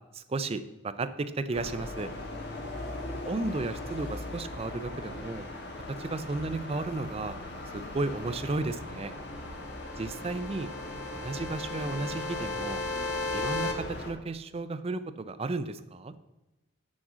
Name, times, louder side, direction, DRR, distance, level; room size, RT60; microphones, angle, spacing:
voice 1, 0.1-2.1 3.2-5.5 5.9-7.4 7.7-9.1 10.0-10.7 11.1-12.8 13.3-16.1, right 3 dB, 30° right, 12 dB, 0.4 m, -34 dB
sound 1, 1.5-14.1, left 2 dB, 55° left, 1.5 m, -40 dB
sound 2, 8.8-13.7, left 3 dB, 80° left, 1.3 m, -36 dB
6.3 x 6.1 x 7.3 m, 1.0 s
head